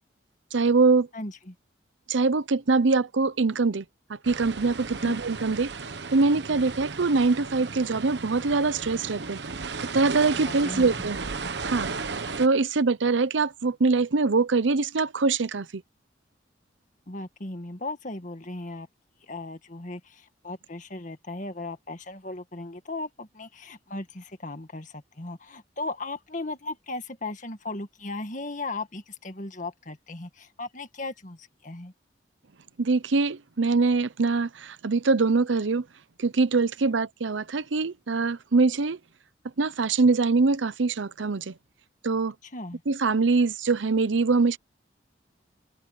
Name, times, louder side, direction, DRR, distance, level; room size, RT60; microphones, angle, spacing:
voice 1, 0.5-1.1 2.1-5.7 6.1-9.4 9.9-11.2 11.6-11.9 12.4-15.8 32.8-35.8 36.2-39.0 39.6-41.5 42.0-42.3 42.9-44.6, right 4 dB, 85° right, 0.7 m, -23 dB
voice 2, 1.1-1.6 5.0-5.2 10.5-10.9 17.1-18.9 19.2-31.9 42.4-42.8, left 2 dB, 40° left, 1.9 m, -37 dB
sound 1, 4.2-12.5, right 4 dB, 65° right, 1.1 m, -35 dB
head